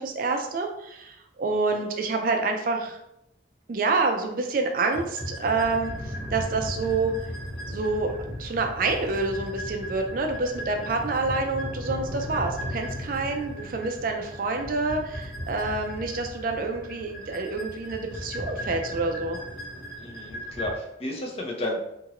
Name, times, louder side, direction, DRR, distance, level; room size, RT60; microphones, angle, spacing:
voice 1, 0.0-3.0 3.7-7.1 7.7-19.4, right 3 dB, 45° right, 4 dB, 0.3 m, -27 dB
sound 1, 4.9-20.8, equal, 70° left, 1.3 m, -36 dB
voice 2, 20.0-21.8, left 1 dB, 30° left, 0 dB, 0.5 m, -33 dB
2.9 x 2.5 x 2.9 m, 0.82 s
head